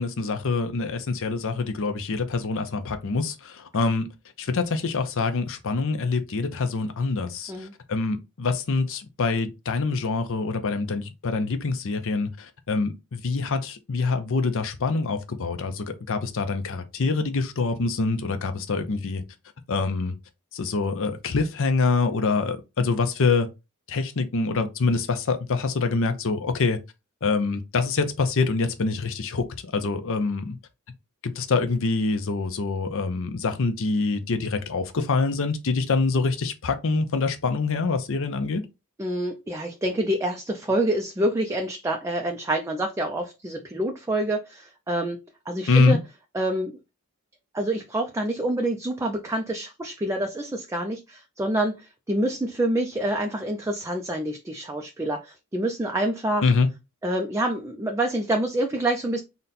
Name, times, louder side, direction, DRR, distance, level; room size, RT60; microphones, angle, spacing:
voice 1, 0.0-4.1 4.4-19.2 19.7-20.1 20.5-23.5 23.9-26.8 27.2-30.6 31.2-38.6 45.7-46.0 56.4-56.7, left 4 dB, 65° left, 0.6 m, -25 dB
voice 2, 39.0-45.2 45.5-46.0 46.3-46.7 47.5-56.5 57.0-59.2, right 1 dB, 15° right, 0.4 m, -27 dB
4.0 x 2.2 x 4.0 m
head